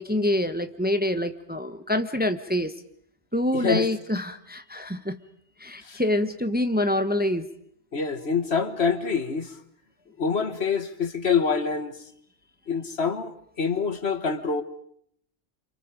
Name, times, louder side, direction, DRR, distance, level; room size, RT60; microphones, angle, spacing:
voice 1, 0.0-2.7 3.3-5.2 5.6-7.5, left 1 dB, 10° right, 1.1 m, -26 dB
voice 2, 3.5-3.9 5.8-6.0 7.9-9.5 10.2-11.9 12.7-14.6, left 5 dB, 65° left, 1.9 m, -26 dB
30.0 x 27.5 x 5.2 m
omnidirectional pair, 1.2 m